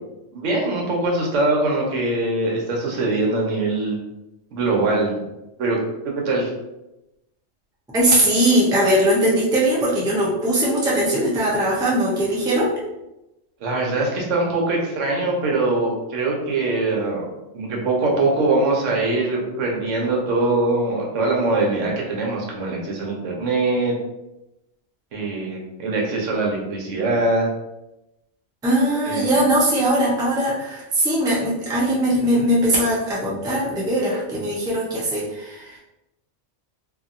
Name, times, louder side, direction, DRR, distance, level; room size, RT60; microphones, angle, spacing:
voice 1, 0.3-4.0 4.5-5.1 5.6-5.8 6.0-6.5 13.6-17.3 17.5-23.9 25.1-27.5 29.1-29.3, right 2 dB, 85° right, -1 dB, 1.1 m, -22 dB
voice 2, 7.9-12.7 28.6-35.8, right 1 dB, 5° right, -6 dB, 0.4 m, -20 dB
2.8 x 2.5 x 2.5 m, 0.94 s
omnidirectional pair, 1.3 m